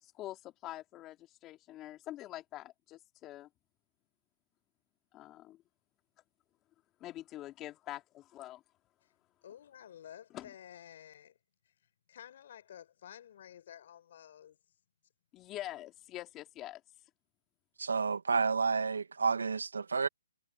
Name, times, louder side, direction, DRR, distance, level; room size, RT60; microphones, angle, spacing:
voice 1, 0.0-3.5 5.1-5.6 7.0-8.6 10.3-10.5 15.3-16.8, left 14 dB, 20° left, 3.0 m, -45 dB
voice 2, 9.4-11.4 12.1-14.6, left 10 dB, 50° left, 6.8 m, -52 dB
voice 3, 17.8-20.1, right 5 dB, 85° right, 1.8 m, -30 dB
hypercardioid pair, 155°, 0 cm